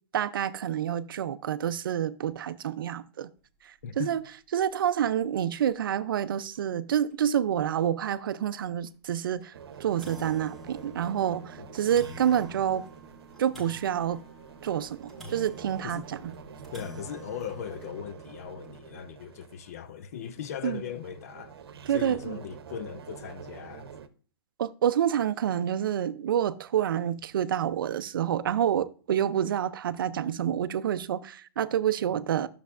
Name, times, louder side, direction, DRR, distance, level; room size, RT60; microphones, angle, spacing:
voice 1, 0.1-3.3 3.6-4.2 4.5-9.5 9.8-12.8 13.4-14.2 14.6-16.3 20.6-20.8 21.9-22.4 24.6-32.5, right 9 dB, 65° right, 0.5 m, -28 dB
sound 1, 3.6-3.8 4.2-4.3 4.8-4.9 5.9-6.0 6.6-6.7 7.1-7.2 7.7-7.8 8.9-9.0 9.4-9.5 9.7-18.9, left 1 dB, ahead, 1.3 m, -48 dB
voice 2, 3.8-4.2 11.6-11.7 15.8-16.0 16.7-21.6 21.9-23.9, left 9 dB, 40° left, 0.5 m, -39 dB
sound 2, 9.5-24.1, right 7 dB, 85° right, 0.8 m, -47 dB
10.5 x 6.8 x 2.4 m
hypercardioid pair, 175°, 13 cm